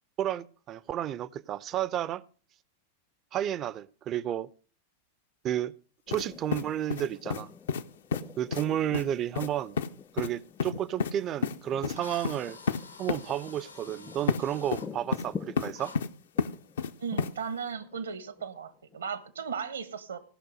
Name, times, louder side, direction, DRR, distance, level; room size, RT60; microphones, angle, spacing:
voice 1, 0.2-2.2 3.3-4.5 5.4-5.7 6.1-7.5 8.4-9.8 10.1-12.6 13.0-15.9, right 11 dB, 30° right, 0.5 m, -32 dB
sound 1, 6.1-6.3 6.5-7.4 7.7-7.8 8.1-8.2 8.5-8.7 8.9-9.1 9.4-9.5 9.8-9.9 10.2-10.3 10.6-11.1 11.4-11.6 11.8-12.0 12.2-12.4 12.7-12.8 13.1-13.2 14.3-14.4 14.7-15.3 15.6-16.1 16.4-16.9 17.2-17.3, left 6 dB, 60° left, 0.6 m, -29 dB
sound 2, 6.1-19.1, left 6 dB, 20° left, 0.5 m, -47 dB
Drill, 11.3-11.4 12.0-14.9 15.8-16.0, left 4 dB, 80° left, 1.3 m, -48 dB
voice 2, 17.0-20.2, right 6 dB, 70° right, 1.1 m, -36 dB
16.0 x 6.1 x 6.3 m
figure-of-eight pair, 90°, 0 cm